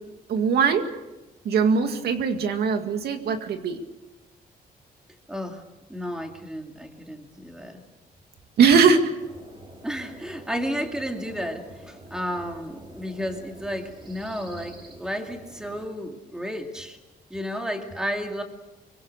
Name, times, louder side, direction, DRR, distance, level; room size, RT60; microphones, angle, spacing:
voice 1, 0.3-0.9 1.4-3.8 8.6-9.1, right 5 dB, 85° right, 6 dB, 2.2 m, -20 dB
voice 2, 5.3-5.6 5.9-7.8 9.8-17.0 17.3-18.4, equal, 5° right, 3 dB, 2.4 m, -32 dB
sound 1, 9.2-15.9, right 1 dB, 30° right, 3.7 m, -47 dB
24.5 x 24.0 x 6.7 m, 1.0 s
wide cardioid pair, 165°, 16 cm